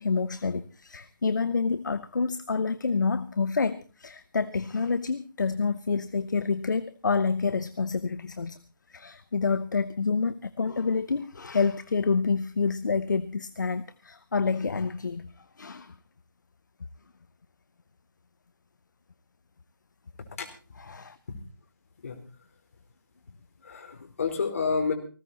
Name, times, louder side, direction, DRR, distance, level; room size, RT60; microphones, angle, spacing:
voice 1, 0.0-8.6 8.9-15.3 15.6-15.9 20.9-21.2, left 4 dB, 55° left, 14 dB, 1.0 m, -28 dB
voice 2, 23.6-24.9, left 5 dB, 40° left, 5 dB, 4.1 m, -29 dB
19.0 x 16.0 x 4.2 m, 0.36 s
figure-of-eight pair, 160°, 12 cm